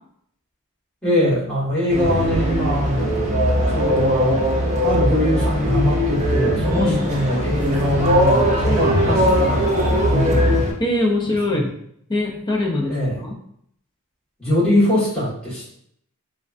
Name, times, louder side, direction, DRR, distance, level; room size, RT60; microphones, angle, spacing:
voice 1, 1.0-3.3 3.7-4.4 4.8-10.7 11.5-11.6 12.9-13.2 14.4-15.7, left 1 dB, 5° left, -11 dB, 1.4 m, -22 dB
sound 1, 1.9-10.7, equal, 30° right, 0.5 m, -20 dB
voice 2, 10.8-11.7 12.1-13.4, left 2 dB, 20° left, -1 dB, 0.5 m, -22 dB
3.2 x 2.3 x 2.5 m, 0.69 s
head